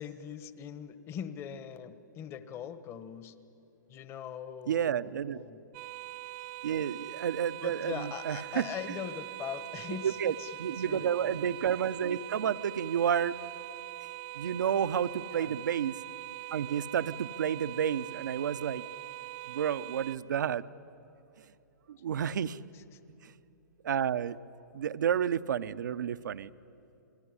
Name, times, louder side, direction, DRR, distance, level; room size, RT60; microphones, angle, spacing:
voice 1, 0.0-3.4 3.9-5.6 7.6-11.4 15.3-15.6 22.7-23.0, left 8 dB, 25° left, 13 dB, 1.3 m, -42 dB
voice 2, 4.7-5.4 6.6-8.6 10.0-10.3 10.6-13.3 14.3-15.9 16.5-18.8 19.4-20.6 21.9-22.6 23.2-23.3 23.8-24.4 24.7-26.5, right 8 dB, 70° right, 14 dB, 0.9 m, -30 dB
sound 1, 5.7-20.2, right 20 dB, 35° right, 0.6 m, -43 dB
27.5 x 20.0 x 9.8 m, 2.8 s
hypercardioid pair, 135°, 10 cm